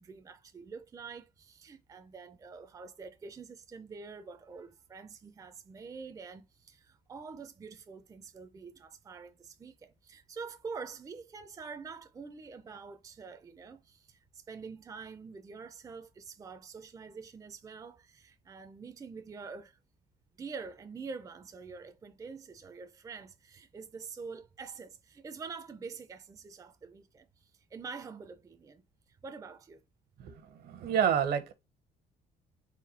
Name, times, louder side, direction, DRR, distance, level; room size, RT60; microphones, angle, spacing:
voice 1, 0.0-19.8 20.3-28.8 29.1-29.8, right 5 dB, 20° right, 0.4 m, -46 dB
voice 2, 30.2-31.5, right 8 dB, 65° right, 0.8 m, -29 dB
4.2 x 2.2 x 4.1 m
cardioid pair, 110°, 17 cm